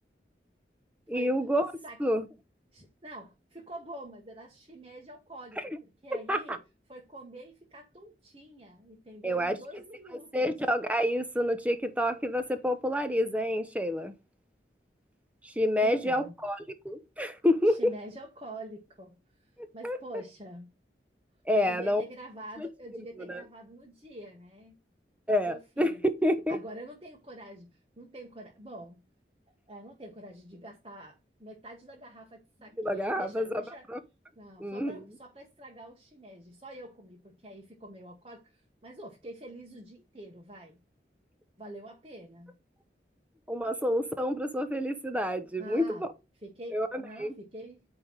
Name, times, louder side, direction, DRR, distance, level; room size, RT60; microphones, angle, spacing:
voice 1, 1.1-1.7 2.0-2.3 5.6-5.8 6.3-6.6 9.2-9.6 10.3-14.1 15.4-17.9 19.8-20.0 21.5-22.0 22.6-22.7 23.2-23.4 25.3-25.9 26.2-26.6 32.8-33.5 33.9-34.0 34.6-35.0 43.5-46.1 46.7-47.3, equal, 10° right, 0.8 m, -28 dB
voice 2, 2.7-6.6 6.9-10.5 15.8-16.4 17.6-19.5 19.7-20.7 21.5-24.7 25.5-26.0 26.5-29.0 29.7-33.9 34.3-40.8 41.6-42.5 45.6-46.0 46.4-47.8, right 1 dB, 30° right, 1.5 m, -46 dB
9.3 x 3.5 x 4.6 m
head